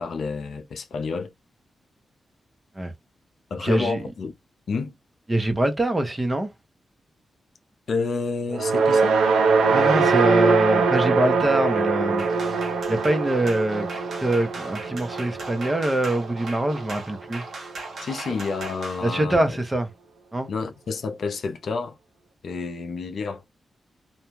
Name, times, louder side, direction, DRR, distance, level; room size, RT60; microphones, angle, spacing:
voice 1, 0.0-1.3 3.5-4.3 4.7-4.9 7.9-9.2 18.0-19.4 20.5-22.0 22.4-23.4, left 4 dB, 70° left, 0.5 m, -29 dB
voice 2, 3.6-4.1 5.3-6.5 9.7-12.3 12.9-13.9 14.2-17.4 19.0-19.9 20.3-20.5, right 1 dB, 25° right, 0.8 m, -24 dB
sound 1, 8.5-16.9, right 4 dB, 85° right, 0.4 m, -22 dB
sound 2, 12.2-19.0, right 3 dB, 70° right, 1.0 m, -38 dB
2.4 x 2.2 x 3.1 m
supercardioid pair, 45°, 0 cm